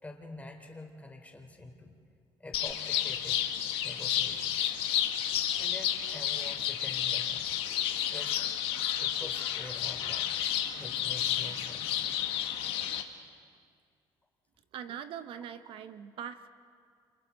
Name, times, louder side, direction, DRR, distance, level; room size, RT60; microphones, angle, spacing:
voice 1, 0.0-1.9 2.4-3.4 3.8-4.7 5.6-7.5 8.0-8.4 9.0-10.3 10.8-12.0, left 2 dB, 15° left, 2 dB, 3.4 m, -46 dB
sound 1, 2.5-13.0, left 10 dB, 80° left, 1.4 m, -31 dB
voice 2, 14.7-16.5, right 8 dB, 65° right, 11 dB, 0.8 m, -42 dB
29.5 x 28.0 x 4.2 m, 2.2 s
cardioid pair, 95°, 9 cm